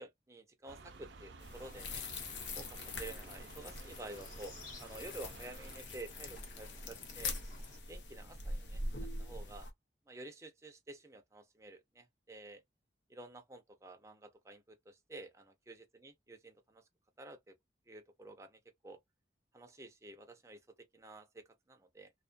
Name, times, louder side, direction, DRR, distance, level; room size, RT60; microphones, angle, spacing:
voice 1, 0.0-2.0 2.5-7.3 7.9-8.8 9.2-9.7 10.1-12.6 13.1-16.8 17.2-17.6 17.9-19.0 19.5-22.1, right 2 dB, 15° right, 0.5 m, -51 dB
sound 1, 0.7-5.8, right 4 dB, 80° right, 0.5 m, -54 dB
sound 2, 1.4-9.7, left 2 dB, 70° left, 0.7 m, -43 dB
sound 3, 1.6-7.8, left 3 dB, 45° left, 0.9 m, -57 dB
2.3 x 2.2 x 2.4 m
head